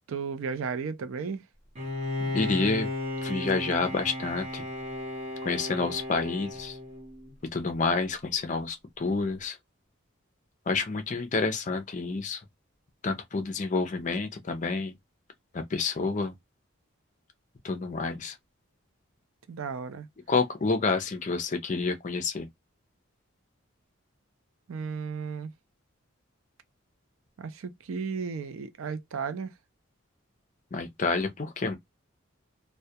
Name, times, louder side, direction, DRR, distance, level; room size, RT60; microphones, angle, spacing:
voice 1, 0.1-1.4 19.5-20.1 24.7-25.5 27.4-29.5, right 5 dB, 80° right, 0.4 m, -34 dB
Bowed string instrument, 1.8-7.3, left 1 dB, 35° right, 0.9 m, -34 dB
voice 2, 2.3-2.9 3.2-4.6 5.4-6.8 7.5-9.6 10.7-12.4 13.0-14.9 15.5-16.3 17.6-18.4 20.3-22.5 30.7-31.8, left 4 dB, 35° left, 0.4 m, -29 dB
2.2 x 2.1 x 2.7 m
head